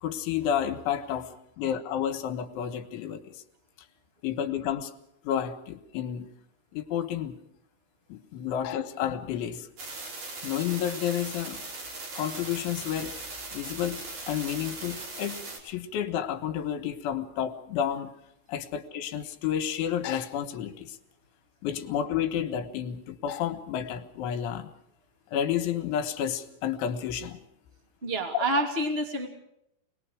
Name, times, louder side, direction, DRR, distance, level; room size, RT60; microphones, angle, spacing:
voice 1, 0.0-3.4 4.2-4.9 5.3-6.3 6.7-7.4 8.1-9.7 10.4-11.6 12.2-13.2 13.5-18.1 18.5-21.0 21.6-24.7 25.3-27.4 28.3-28.4, left 9 dB, 75° left, 7 dB, 3.6 m, -31 dB
sound 1, 9.8-15.6, right 3 dB, 45° right, 6.0 m, -39 dB
voice 2, 28.0-29.3, right 1 dB, 20° right, 4 dB, 1.5 m, -28 dB
27.5 x 20.5 x 4.9 m, 0.78 s
omnidirectional pair, 5.6 m